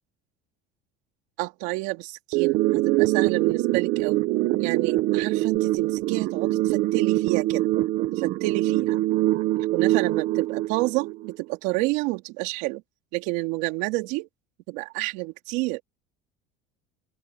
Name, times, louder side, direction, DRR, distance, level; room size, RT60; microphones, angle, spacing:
voice 1, 1.4-4.3 4.6-7.7 8.1-9.0 9.6-12.8 13.1-14.3 14.7-15.8, right 22 dB, 75° right, 3.1 m, -29 dB
sound 1, 2.3-11.3, right 17 dB, 60° right, 1.4 m, -24 dB
open air
cardioid pair, 140°, 18 cm